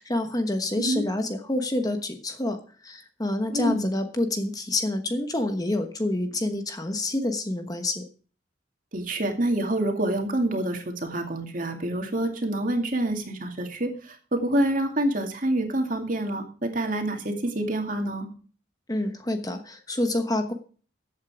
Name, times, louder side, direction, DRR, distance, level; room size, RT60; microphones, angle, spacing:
voice 1, 0.0-2.6 2.8-8.0 18.9-20.5, left 1 dB, 20° left, 7 dB, 1.1 m, -27 dB
voice 2, 3.5-3.9 8.9-18.3, right 1 dB, 45° right, 4 dB, 2.4 m, -27 dB
14.0 x 8.4 x 4.9 m, 0.41 s
head